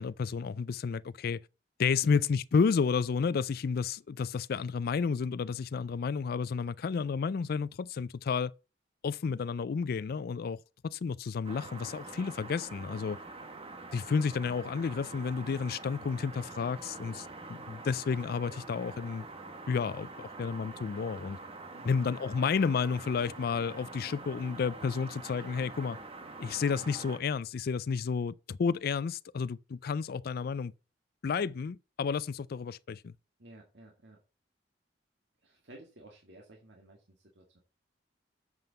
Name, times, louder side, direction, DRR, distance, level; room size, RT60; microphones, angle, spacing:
voice 1, 0.0-1.4 1.8-8.5 9.0-10.6 10.8-13.2 13.9-19.3 19.7-21.4 21.8-26.0 26.4-30.7 31.2-33.1, left 5 dB, 55° left, 0.4 m, -31 dB
sound 1, 11.4-27.2, right 3 dB, 35° right, 1.5 m, -46 dB
voice 2, 21.7-22.2 33.4-34.2 35.4-37.6, right 1 dB, 70° right, 2.1 m, -54 dB
7.8 x 5.4 x 6.9 m
head